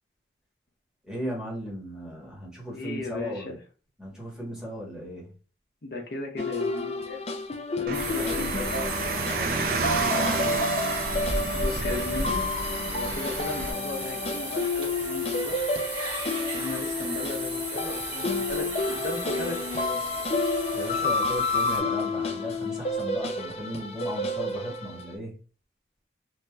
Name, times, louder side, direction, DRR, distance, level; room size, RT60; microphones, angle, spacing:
voice 1, 1.1-3.6 4.0-5.3 7.8-8.5 9.0-10.6 20.7-25.3, equal, 5° right, -4 dB, 1.1 m, -36 dB
voice 2, 2.7-3.5 5.8-7.2 7.7-8.9 11.5-12.4 12.9-15.5 16.4-20.0, left 2 dB, 60° left, 2 dB, 0.7 m, -36 dB
sound 1, 6.4-25.1, left 3 dB, 35° left, 0.3 m, -30 dB
sound 2, 7.9-21.8, right 2 dB, 35° right, 1.2 m, -37 dB
Car, 7.9-13.7, right 3 dB, 50° right, 0.3 m, -30 dB
3.1 x 2.8 x 2.2 m, 0.37 s
head